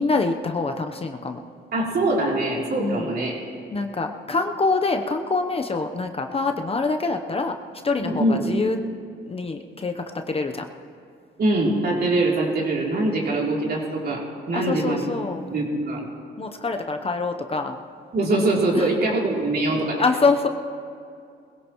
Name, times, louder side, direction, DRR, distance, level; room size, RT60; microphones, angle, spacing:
voice 1, 0.0-1.4 2.8-3.1 3.7-7.5 7.8-8.8 9.3-10.7 14.5-15.4 16.4-17.8 18.7-18.9 20.0-20.5, left 3 dB, 30° left, 5 dB, 0.8 m, -25 dB
voice 2, 1.7-3.4 8.0-8.6 11.4-15.0 15.5-16.0 18.1-20.0, right 2 dB, 50° right, -2 dB, 3.2 m, -23 dB
20.5 x 16.5 x 3.1 m, 2.4 s
cardioid pair, 90°, 20 cm